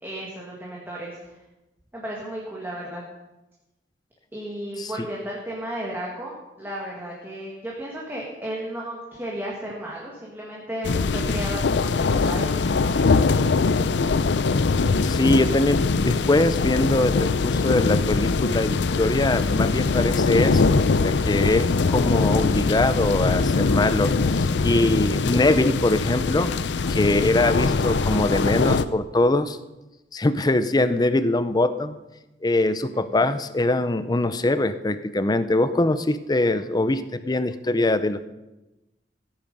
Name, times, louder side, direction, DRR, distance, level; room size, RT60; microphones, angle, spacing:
voice 1, 0.0-1.3 1.9-3.0 4.3-13.3 32.9-33.3, right 1 dB, 10° right, -4 dB, 1.8 m, -34 dB
sound 1, 10.8-28.8, left 4 dB, 75° left, 0.5 m, -22 dB
voice 2, 15.0-26.5 26.9-29.6 30.1-31.9 32.4-38.3, left 2 dB, 25° left, 13 dB, 0.6 m, -22 dB
15.0 x 8.8 x 5.3 m, 1.0 s
head